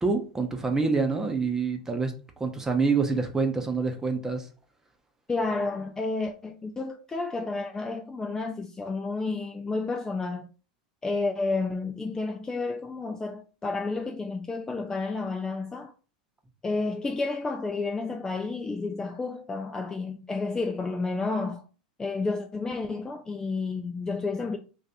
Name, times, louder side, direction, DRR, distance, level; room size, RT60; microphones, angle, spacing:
voice 1, 0.0-2.1 2.4-4.5, right 4 dB, 10° right, 0.8 m, -26 dB
voice 2, 5.3-10.5 11.0-15.9 16.6-21.6 22.0-24.6, left 3 dB, 15° left, 0.4 m, -31 dB
2.6 x 2.5 x 4.2 m
hypercardioid pair, 90°, 4 cm